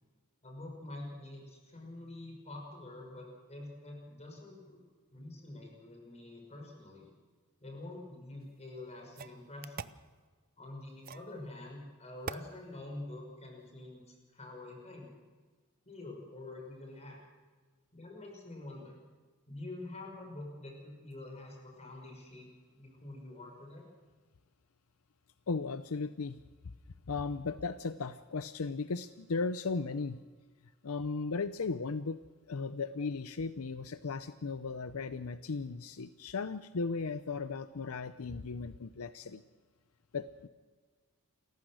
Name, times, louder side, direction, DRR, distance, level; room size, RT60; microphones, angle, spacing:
voice 1, 0.4-4.8 5.1-7.1 7.6-9.9 10.6-15.1 15.8-17.2 17.9-19.0 19.5-22.5 22.7-23.8, left 2 dB, 30° left, 1 dB, 5.8 m, -46 dB
sound 1, 8.4-8.5 9.2-10.0 11.0-11.4 12.3-12.5, right 6 dB, 45° right, 0.6 m, -42 dB
voice 2, 25.5-26.4 27.1-30.2 30.8-32.2 32.5-39.4 40.1-40.5, left 4 dB, 75° left, 13 dB, 0.6 m, -36 dB
28.5 x 15.0 x 6.4 m, 1.4 s
head